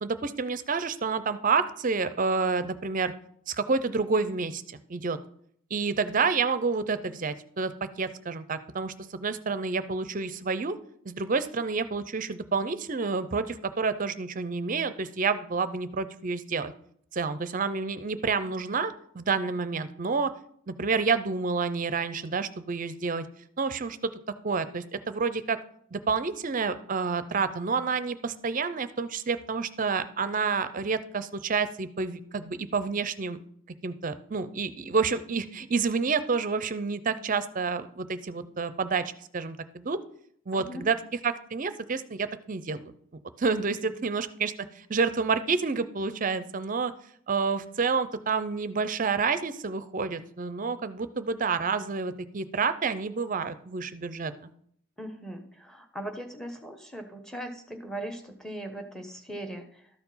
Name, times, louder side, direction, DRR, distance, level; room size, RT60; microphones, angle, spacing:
voice 1, 0.0-3.1 3.5-5.2 5.7-10.8 11.1-16.7 17.1-20.3 20.7-23.2 23.6-24.1 24.4-25.6 25.9-33.4 33.8-40.0 40.5-42.8 43.4-46.9 47.3-54.3, right 4 dB, 40° right, 13 dB, 0.5 m, -29 dB
voice 2, 40.5-40.9 43.9-44.0 55.0-60.0, right 1 dB, 5° left, 5 dB, 1.0 m, -39 dB
12.5 x 4.7 x 5.5 m, 0.66 s
head